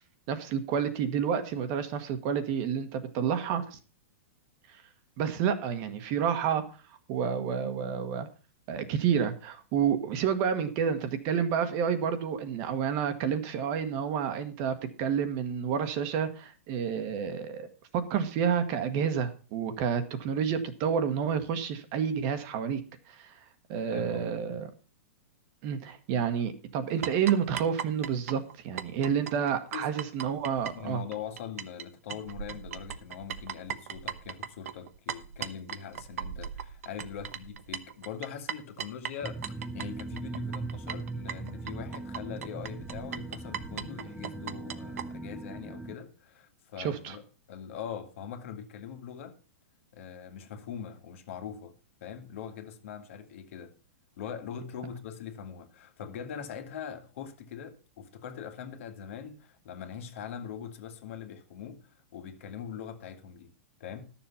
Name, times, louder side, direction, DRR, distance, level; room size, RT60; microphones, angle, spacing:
voice 1, 0.3-3.8 4.7-4.8 5.2-6.6 7.1-8.3 8.7-17.7 17.9-22.8 23.1-23.3 23.7-24.7 25.6-31.0 46.8-47.2, right 7 dB, 40° right, 1.4 m, -29 dB
voice 2, 23.9-24.6 29.7-29.9 30.7-47.2 47.5-49.4 49.9-51.7 52.0-53.7 54.2-61.8 62.1-63.5 63.8-64.1, left 8 dB, 60° left, 2.0 m, -42 dB
sound 1, 27.0-31.8 32.1-45.1, right 9 dB, 75° right, 1.0 m, -38 dB
sound 2, 39.2-46.0, right 2 dB, 5° right, 0.6 m, -39 dB
12.0 x 7.2 x 5.7 m
hypercardioid pair, 150°, 8 cm